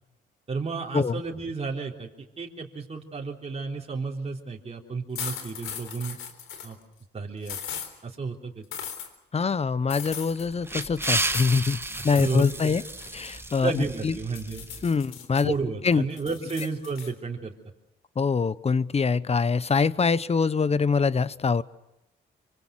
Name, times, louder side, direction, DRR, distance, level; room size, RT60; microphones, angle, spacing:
voice 1, 0.5-6.2 6.6-6.8 7.1-7.6 8.0-8.7 12.0-12.7 13.6-14.7 15.4-17.5, right 4 dB, 30° right, 0 dB, 3.5 m, -32 dB
sound 1, 5.1-6.7 7.4-7.9 8.7-9.1 9.9-10.5 11.0-11.5 11.9-12.5 12.8-14.0 14.3-15.4 15.8-17.1, left 8 dB, 85° left, 3.9 m, -38 dB
voice 2, 9.3-11.8 12.0-12.8 13.1-14.1 14.8-15.5 15.8-16.1 18.2-21.6, left 5 dB, 30° left, 17 dB, 1.0 m, -24 dB
sound 2, 10.5-14.9, right 2 dB, 10° right, 1.8 m, -32 dB
26.5 x 25.5 x 6.4 m, 0.91 s
cardioid pair, 90°, 20 cm